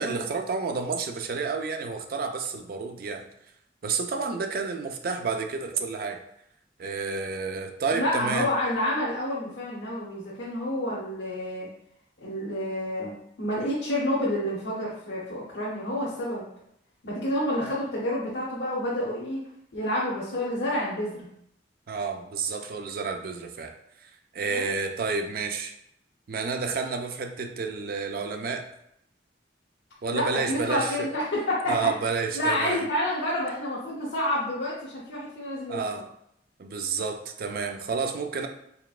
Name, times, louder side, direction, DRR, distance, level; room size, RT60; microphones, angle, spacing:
voice 1, 0.0-3.2 3.8-6.2 6.8-8.5 21.9-23.7 24.0-25.7 26.3-28.7 30.0-31.1 31.7-32.9 35.7-36.1 36.6-38.5, right 5 dB, 50° right, 6 dB, 0.4 m, -30 dB
voice 2, 7.9-11.7 12.2-16.4 17.0-19.4 19.7-21.3 24.5-24.7 30.1-31.8 32.3-35.8, left 1 dB, 75° left, -7 dB, 0.8 m, -29 dB
4.2 x 3.2 x 2.4 m, 0.75 s
head